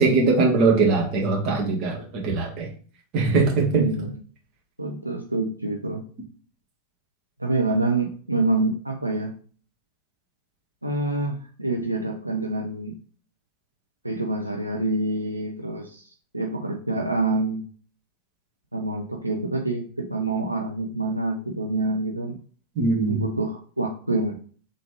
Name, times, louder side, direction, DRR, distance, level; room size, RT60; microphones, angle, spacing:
voice 1, 0.0-2.7 3.1-3.8 22.7-23.2, right 3 dB, 40° right, -1 dB, 1.6 m, -21 dB
voice 2, 3.7-4.2 4.8-6.0 7.4-9.3 10.8-13.0 14.0-16.1 16.3-17.7 18.7-22.4 23.1-24.4, right 2 dB, 85° right, 2 dB, 0.5 m, -26 dB
3.8 x 3.2 x 3.3 m, 0.43 s
figure-of-eight pair, 90°, 0 cm